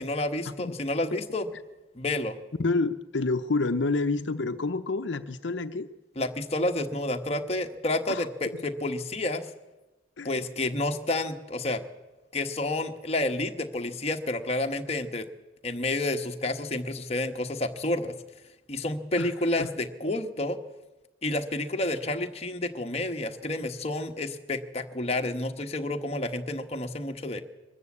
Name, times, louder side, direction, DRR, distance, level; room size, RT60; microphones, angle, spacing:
voice 1, 0.0-1.5 1.9-2.4 6.2-9.5 10.2-11.8 12.3-15.3 15.6-18.1 18.7-20.6 21.2-27.4, left 2 dB, 35° left, 5 dB, 1.3 m, -30 dB
voice 2, 2.6-5.9 8.1-8.3 8.5-8.6 10.2-10.5 19.2-19.3 19.6-19.7, left 3 dB, 75° left, 9 dB, 0.7 m, -28 dB
23.0 x 13.5 x 8.5 m, 1.1 s
head